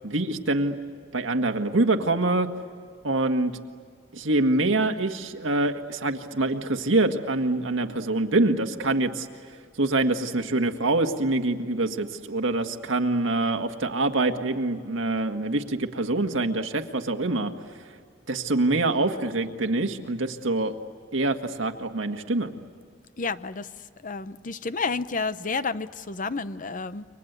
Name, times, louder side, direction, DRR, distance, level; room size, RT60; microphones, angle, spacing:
voice 1, 0.0-0.8 1.1-2.5 3.0-3.5 4.1-9.3 9.8-17.5 18.3-20.7 21.1-22.5, right 2 dB, 80° right, 5 dB, 1.7 m, -25 dB
voice 2, 23.2-23.7 24.0-27.1, left 4 dB, 45° left, 13 dB, 0.8 m, -30 dB
29.5 x 24.5 x 8.2 m, 2.1 s
head